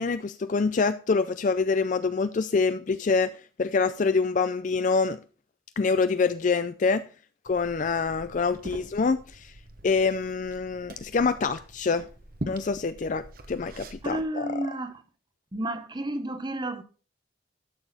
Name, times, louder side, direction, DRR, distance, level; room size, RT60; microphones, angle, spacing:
voice 1, 0.0-5.2 5.8-7.0 7.4-9.5 9.8-12.1 12.5-14.6, left 4 dB, 40° left, 0.4 m, -26 dB
Liquid, 7.5-14.2, right 1 dB, 50° right, 1.2 m, -43 dB
voice 2, 14.0-15.0 15.5-16.8, right 1 dB, 20° right, 0.9 m, -31 dB
12.0 x 6.9 x 4.1 m
head